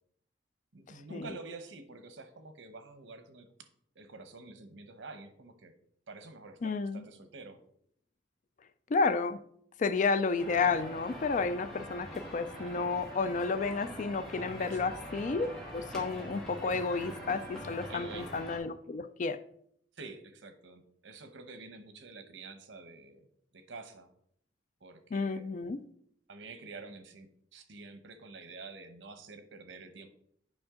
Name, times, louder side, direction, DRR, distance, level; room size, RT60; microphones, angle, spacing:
voice 1, 0.7-3.5 3.9-5.7 6.1-7.6 13.8-14.0 14.6-14.9 17.9-18.4 19.9-23.3 23.5-24.1 24.8-25.6 26.3-30.1, right 3 dB, 90° right, 1.0 m, -48 dB
voice 2, 6.6-7.0 8.9-9.4 9.8-19.4 25.1-25.8, left 4 dB, 45° left, 0.4 m, -31 dB
sound 1, 10.4-18.6, equal, ahead, 2.2 m, -44 dB
8.6 x 5.3 x 3.7 m
head